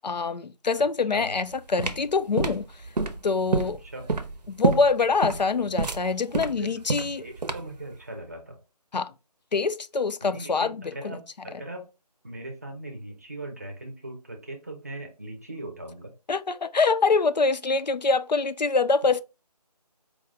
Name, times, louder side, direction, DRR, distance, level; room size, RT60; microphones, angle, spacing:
voice 1, 0.0-2.7 3.2-3.8 4.5-7.2 8.9-9.1 9.5-10.8 11.0-11.2 16.3-19.2, left 4 dB, 90° left, 0.5 m, -24 dB
sound 1, 1.3-7.8, right 3 dB, 80° right, 0.6 m, -28 dB
voice 2, 3.6-4.1 6.6-8.6 10.2-11.9 12.2-16.1 19.0-19.1, right 2 dB, 25° right, 0.6 m, -40 dB
4.7 x 2.2 x 3.6 m
figure-of-eight pair, 160°, 21 cm